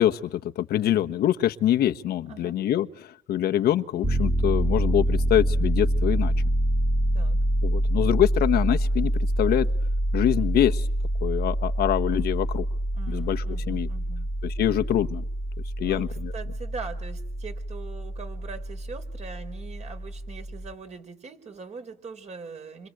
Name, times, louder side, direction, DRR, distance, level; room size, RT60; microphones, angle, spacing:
voice 1, 0.0-6.3 7.6-9.1 9.4-9.7 10.1-10.9 11.2-12.6 13.1-13.9 14.4-15.2 15.8-16.3, left 12 dB, 70° left, 7 dB, 1.4 m, -24 dB
Piano, 4.0-20.7, right 1 dB, 15° right, 2.4 m, -26 dB
voice 2, 12.9-14.3 15.8-16.1 16.3-22.9, right 5 dB, 40° right, 7 dB, 4.7 m, -41 dB
28.0 x 26.0 x 8.0 m, 0.68 s
cardioid pair, 110°, 17 cm